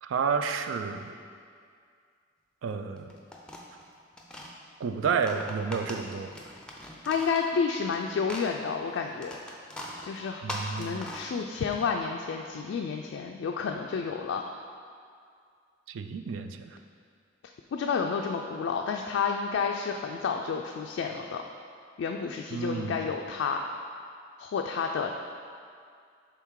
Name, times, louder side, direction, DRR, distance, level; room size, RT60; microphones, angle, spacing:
voice 1, 0.0-1.1 2.6-3.1 4.8-6.3 10.4-11.1 15.9-16.8 22.5-23.1, right 5 dB, 90° right, 8 dB, 0.4 m, -31 dB
sound 1, 3.0-4.5 5.1-8.0 8.2-11.7, left 1 dB, 5° left, 0.5 m, -41 dB
voice 2, 7.1-9.4 10.0-14.4 17.7-21.4 22.0-23.6 24.4-25.1, left 5 dB, 75° left, 2 dB, 0.3 m, -30 dB
5.7 x 3.6 x 4.6 m, 2.2 s
head